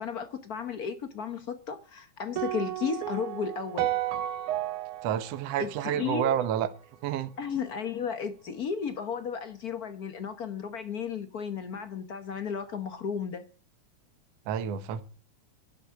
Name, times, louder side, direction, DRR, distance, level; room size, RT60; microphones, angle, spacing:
voice 1, 0.0-3.9 5.6-6.4 7.4-13.5, left 6 dB, 85° left, 0.8 m, -34 dB
sound 1, 2.4-6.7, right 13 dB, 85° right, 2.4 m, -33 dB
voice 2, 5.0-6.7 7.0-7.3 14.5-15.0, right 10 dB, 65° right, 2.0 m, -29 dB
11.5 x 11.0 x 8.5 m
omnidirectional pair, 3.4 m